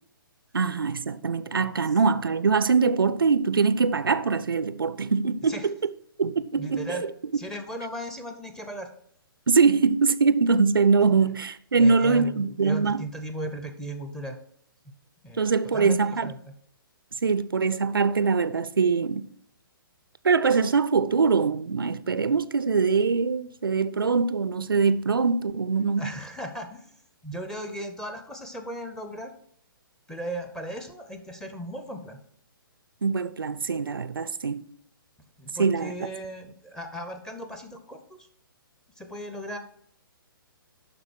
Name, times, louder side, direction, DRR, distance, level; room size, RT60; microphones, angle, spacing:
voice 1, 0.5-5.7 6.2-7.0 9.5-13.0 15.4-16.3 17.2-19.3 20.2-26.1 33.0-34.6 35.6-35.9, right 5 dB, 70° right, 0.5 m, -23 dB
voice 2, 6.6-7.0 7.3-8.9 11.7-14.4 15.2-16.5 26.0-26.9 27.2-29.4 30.1-32.2 35.4-38.3 39.0-39.6, right 1 dB, 5° left, 0.7 m, -37 dB
11.0 x 4.0 x 4.5 m
figure-of-eight pair, 125°, 12 cm